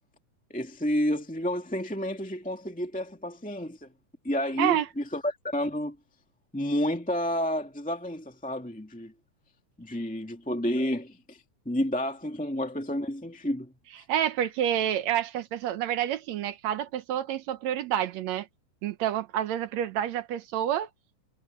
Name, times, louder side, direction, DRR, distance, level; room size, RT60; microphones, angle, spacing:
voice 1, 0.5-3.9 4.2-6.0 6.5-9.1 9.8-11.4 11.6-13.7, equal, 5° left, 1.1 m, -30 dB
voice 2, 14.1-18.5 18.8-20.9, right 11 dB, 70° right, 2.0 m, -28 dB
omnidirectional pair, 3.5 m